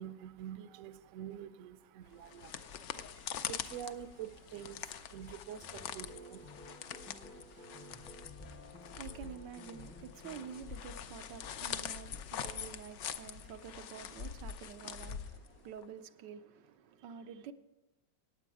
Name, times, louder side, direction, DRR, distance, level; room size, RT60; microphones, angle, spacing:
voice 1, 0.0-8.1 12.4-12.9, right 10 dB, 65° right, 0.9 m, -48 dB
sound 1, 2.1-15.8, left 8 dB, 75° left, 0.6 m, -44 dB
sound 2, 5.6-10.7, left 1 dB, 15° left, 0.4 m, -53 dB
voice 2, 8.5-17.5, right 8 dB, 85° right, 1.3 m, -49 dB
15.5 x 9.3 x 4.8 m
omnidirectional pair, 1.9 m